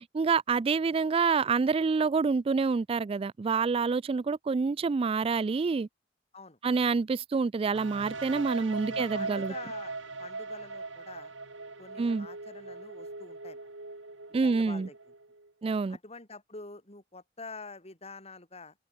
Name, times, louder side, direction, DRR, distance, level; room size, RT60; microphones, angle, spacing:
voice 1, 0.1-5.9 6.6-9.5 12.0-12.3 14.3-14.9 15.6-16.0, right 4 dB, 30° right, 0.3 m, -27 dB
sound 1, 7.7-15.5, right 3 dB, 75° right, 3.3 m, -40 dB
voice 2, 8.5-9.9 10.2-11.3 11.8-13.7 14.4-15.1 15.9-18.7, left 3 dB, 35° left, 7.0 m, -47 dB
head